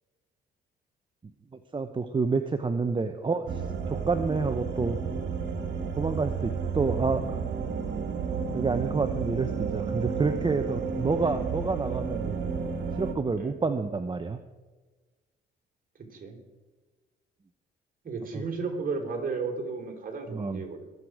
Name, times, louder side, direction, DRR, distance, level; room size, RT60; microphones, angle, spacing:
voice 1, 1.7-3.6 3.9-5.0 6.0-7.4 8.5-12.4 13.0-14.4 18.3-18.4 20.3-20.6, right 4 dB, 25° right, 7 dB, 0.8 m, -28 dB
sound 1, 3.5-13.1, right 6 dB, 65° right, 2.1 m, -32 dB
voice 2, 18.0-20.8, right 4 dB, 45° right, 3 dB, 3.7 m, -34 dB
23.0 x 8.0 x 4.9 m, 1.3 s
cardioid pair, 90°, 20 cm